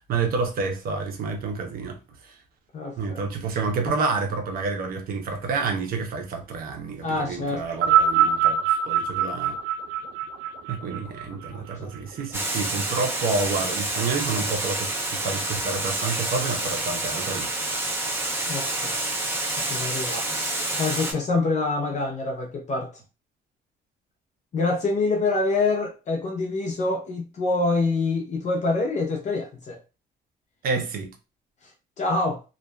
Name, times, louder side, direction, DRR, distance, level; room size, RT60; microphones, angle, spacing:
voice 1, 0.0-2.4 3.0-9.6 10.7-17.5 30.6-31.1, right 4 dB, 60° right, 0.7 m, -29 dB
voice 2, 2.7-3.2 7.0-7.6 7.9-8.0 11.5-11.9 18.5-18.9 19.7-20.3 20.8-22.9 24.5-29.8 32.0-32.4, left 3 dB, 45° left, 0.6 m, -26 dB
sound 1, 7.7-12.2 13.1-13.2, right 8 dB, 90° right, 0.5 m, -23 dB
Water, 12.3-21.1, right 2 dB, 15° right, 0.7 m, -28 dB
2.6 x 2.3 x 2.2 m
cardioid pair, 110°, 17 cm